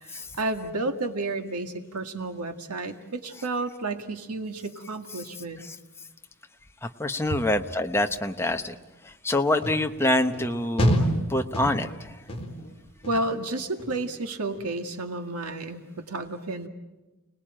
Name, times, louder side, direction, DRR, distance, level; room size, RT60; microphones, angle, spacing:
voice 1, 0.0-5.6 13.1-16.7, right 2 dB, 90° right, 7 dB, 2.0 m, -31 dB
voice 2, 6.8-8.7 9.0-12.2, left 1 dB, 10° left, 5 dB, 1.0 m, -26 dB
sound 1, 9.6-9.8 10.3-10.5 10.8-11.2 11.5-12.0 12.3-12.7 13.0-13.4 13.8-14.2 14.5-14.7, equal, 25° left, 3.8 m, -26 dB
30.0 x 19.5 x 8.9 m, 1.1 s
head